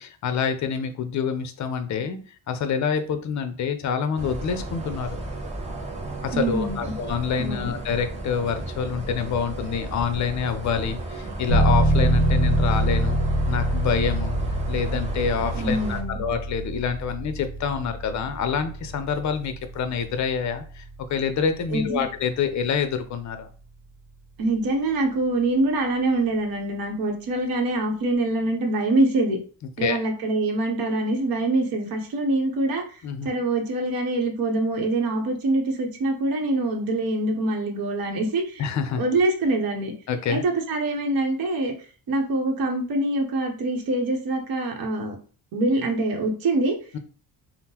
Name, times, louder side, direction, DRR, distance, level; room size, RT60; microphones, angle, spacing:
voice 1, 0.0-2.2 2.5-5.2 6.2-13.2 13.5-14.4 14.7-20.8 21.1-23.5 29.8-30.0 33.0-33.3 38.6-39.0 40.1-40.4 46.9-47.0, left 6 dB, 45° left, 9 dB, 0.5 m, -27 dB
sound 1, 4.2-16.0, right 2 dB, 15° right, 0.6 m, -34 dB
voice 2, 6.3-6.9 7.4-7.7 15.5-16.2 21.7-22.0 24.4-29.4 29.8-38.6 39.0-39.9 40.3-41.7 42.1-45.2 45.5-46.8, right 2 dB, 60° right, 2 dB, 0.8 m, -24 dB
sound 2, 11.5-22.0, right 1 dB, 90° right, 0.8 m, -25 dB
3.5 x 2.0 x 2.8 m, 0.39 s
cardioid pair, 135°, 41 cm